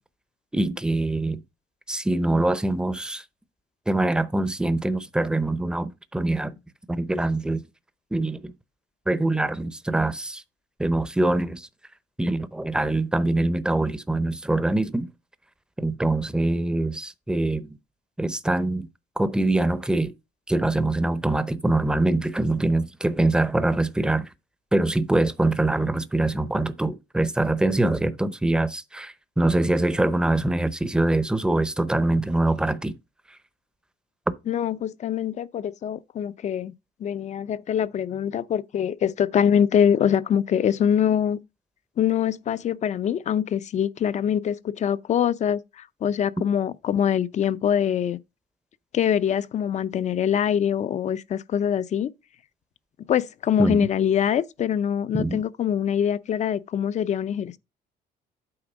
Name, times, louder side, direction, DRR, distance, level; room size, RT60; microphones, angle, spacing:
voice 1, 0.5-1.4 1.9-3.2 3.9-6.5 6.9-7.6 8.1-8.5 9.1-10.4 10.8-11.7 12.2-15.1 15.8-17.8 18.2-18.9 19.2-20.1 20.5-24.3 24.7-32.9 53.6-53.8 55.1-55.4, right 2 dB, 5° right, 0.7 m, -24 dB
voice 2, 34.5-36.7 37.0-41.4 42.0-48.2 48.9-52.1 53.1-57.6, left 9 dB, 45° left, 0.5 m, -24 dB
8.8 x 3.7 x 6.1 m
cardioid pair, 110°, 17 cm